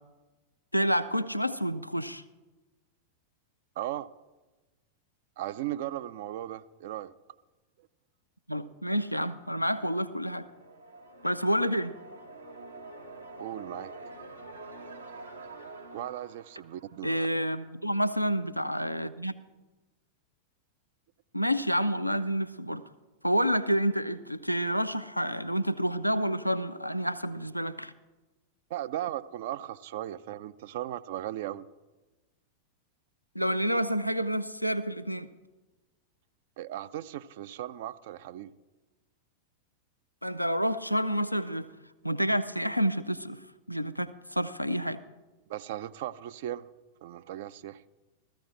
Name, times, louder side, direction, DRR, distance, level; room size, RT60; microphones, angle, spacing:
voice 1, 0.7-2.2 8.5-10.5 11.2-11.9 17.0-19.3 21.3-22.8 23.2-27.9 33.3-35.3 40.2-41.7 42.0-43.4 43.7-45.0, equal, 90° left, 11 dB, 0.4 m, -29 dB
voice 2, 3.8-4.1 5.4-7.1 13.4-13.9 15.9-17.3 28.7-31.7 36.6-38.5 45.5-46.7 47.0-47.8, right 12 dB, 55° right, 14 dB, 0.4 m, -37 dB
sound 1, 10.0-17.7, right 2 dB, 80° right, 1.2 m, -47 dB
14.5 x 14.5 x 3.7 m, 1.1 s
figure-of-eight pair, 90°, 0 cm